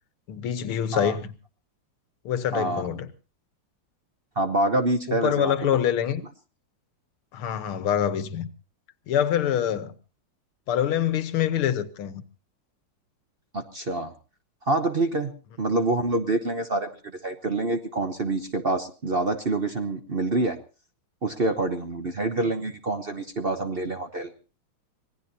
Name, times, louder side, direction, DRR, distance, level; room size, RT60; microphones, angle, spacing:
voice 1, 0.3-1.3 2.3-3.1 5.1-6.2 7.3-8.5 9.1-9.9 10.7-12.2, left 9 dB, 85° left, 1.9 m, -25 dB
voice 2, 2.5-2.9 4.4-5.5 13.5-14.1 14.7-15.3 15.6-16.9 17.2-20.6 21.2-24.3, right 2 dB, 45° right, 0.8 m, -26 dB
25.5 x 18.0 x 2.7 m
omnidirectional pair, 2.3 m